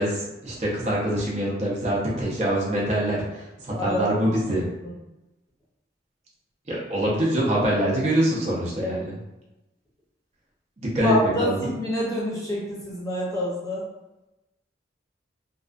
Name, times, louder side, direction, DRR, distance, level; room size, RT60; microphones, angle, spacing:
voice 1, 0.0-4.6 6.7-9.2 10.8-11.7, right 1 dB, 40° right, -5 dB, 0.5 m, -24 dB
voice 2, 3.8-4.6 8.8-8.9 11.0-13.8, equal, 20° left, -6 dB, 0.6 m, -27 dB
2.3 x 2.2 x 2.4 m, 0.98 s
head